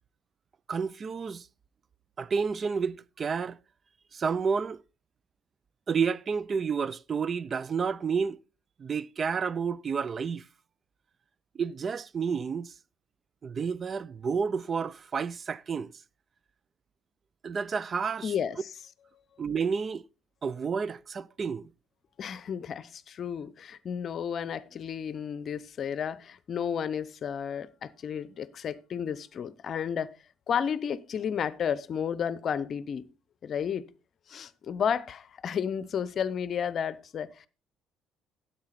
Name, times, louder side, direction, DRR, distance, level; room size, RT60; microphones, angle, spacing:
voice 1, 0.7-1.5 2.2-3.6 4.1-4.8 5.9-8.4 8.8-10.5 11.6-12.7 13.4-15.9 17.4-18.3 19.4-20.0 20.4-21.7, right 6 dB, 40° right, 0.4 m, -30 dB
voice 2, 18.2-18.6 22.2-30.1 30.5-33.1 33.4-33.8 34.3-37.5, left 7 dB, 50° left, 0.6 m, -32 dB
9.6 x 8.0 x 4.1 m
hypercardioid pair, 60°, 0 cm